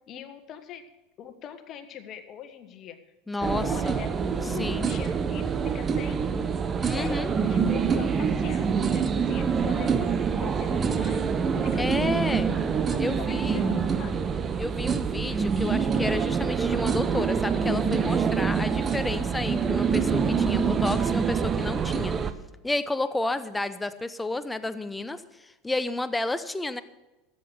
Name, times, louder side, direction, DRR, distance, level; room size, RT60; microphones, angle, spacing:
voice 1, 0.1-0.8 1.2-3.0 3.4-6.4 6.8-11.2 11.6-14.3, left 9 dB, 40° left, 9 dB, 1.5 m, -43 dB
voice 2, 3.3-4.0 4.6-4.9 6.8-7.3 11.8-12.5 13.0-13.6 14.6-22.2 22.6-26.8, left 2 dB, 10° left, 12 dB, 0.8 m, -31 dB
sound 1, 3.4-22.3, right 6 dB, 25° right, 0.9 m, -26 dB
13.5 x 8.0 x 6.7 m, 1.1 s
figure-of-eight pair, 80°, 0 cm